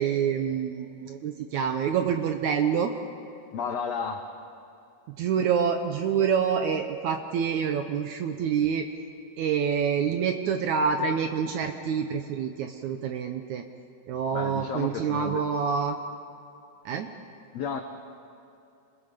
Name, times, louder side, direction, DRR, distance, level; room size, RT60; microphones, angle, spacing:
voice 1, 0.0-2.9 5.2-8.9 9.4-13.6 14.1-16.0 16.8-17.1, right 7 dB, 75° right, 6 dB, 1.8 m, -27 dB
voice 2, 3.5-4.2 14.3-15.4 17.5-17.8, left 6 dB, 85° left, 5 dB, 1.5 m, -32 dB
28.0 x 21.0 x 5.2 m, 2.7 s
omnidirectional pair, 4.4 m